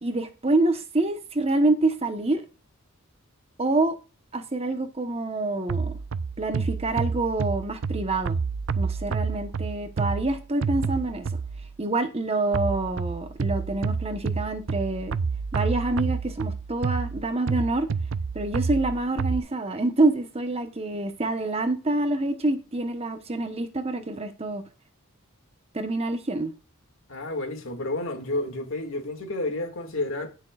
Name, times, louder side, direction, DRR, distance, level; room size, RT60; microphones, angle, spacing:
voice 1, 0.0-2.4 3.6-4.0 4.3-5.9 6.4-8.4 8.8-11.3 11.8-15.2 15.5-17.9 18.3-24.6 25.7-26.5, right 2 dB, 30° right, 1.1 m, -26 dB
sound 1, 5.7-11.7 12.5-19.4, right 5 dB, 60° right, 0.5 m, -29 dB
voice 2, 27.1-30.3, left 2 dB, 60° left, 2.2 m, -30 dB
17.0 x 6.4 x 2.5 m
head